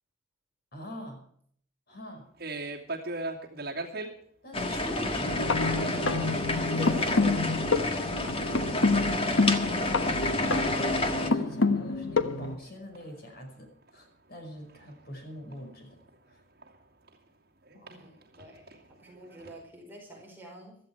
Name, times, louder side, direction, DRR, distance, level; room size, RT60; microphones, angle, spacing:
voice 1, 0.7-1.2 1.9-2.3 4.4-5.5 11.1-16.0 16.3-16.4 17.7-18.0, equal, 50° left, 4 dB, 5.5 m, -44 dB
sound 1, 2.4-4.1 5.2-5.6 5.9-6.1 6.6-6.7 7.1-7.2 7.5-8.2 8.5-9.8 10.1-13.5 13.8-17.2 17.6-19.6, right 2 dB, 55° right, 2.6 m, -41 dB
sound 2, 4.5-11.3, left 2 dB, 30° left, 1.6 m, -29 dB
sound 3, 5.2-12.6, left 3 dB, 85° left, 1.2 m, -28 dB
voice 2, 6.8-7.6 17.8-20.8, right 1 dB, 10° right, -1 dB, 4.7 m, -45 dB
16.0 x 14.0 x 4.7 m, 0.63 s
head